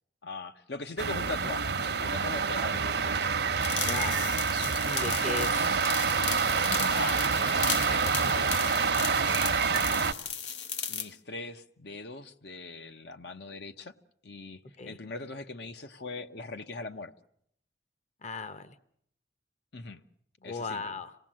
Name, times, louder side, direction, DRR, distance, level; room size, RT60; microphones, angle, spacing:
voice 1, 0.2-3.4 6.9-10.1 10.9-13.9 14.2-17.1 19.7-20.0 20.4-20.9, left 3 dB, 70° left, 1.0 m, -41 dB
sound 1, 1.0-10.1, right 5 dB, 65° right, 0.9 m, -27 dB
sound 2, 3.6-11.1, left 7 dB, 90° left, 1.3 m, -36 dB
voice 2, 3.9-4.3 4.8-5.5 14.8-15.0 18.2-18.8 20.4-21.2, left 4 dB, 40° left, 0.9 m, -36 dB
27.0 x 18.5 x 7.6 m
head